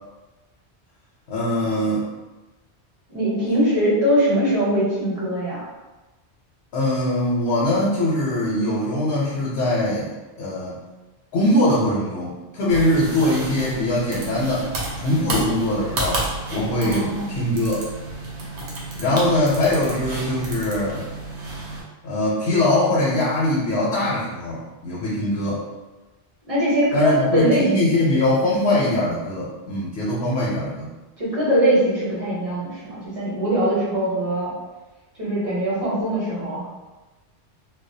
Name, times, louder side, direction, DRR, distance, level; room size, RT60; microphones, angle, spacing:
voice 1, 1.3-2.0 6.7-10.1 10.4-10.8 11.3-14.7 15.0-16.3 16.5-17.9 19.0-21.0 22.0-25.6 26.9-30.9, left 1 dB, 70° left, -6 dB, 0.8 m, -22 dB
voice 2, 3.1-5.6 16.8-17.4 26.5-28.0 28.7-28.8 31.2-34.5 35.2-36.7, equal, 35° right, -8 dB, 0.9 m, -22 dB
sound 1, 12.7-21.8, right 2 dB, 90° right, 1.0 m, -31 dB
2.3 x 2.2 x 2.6 m, 1.1 s
omnidirectional pair, 1.1 m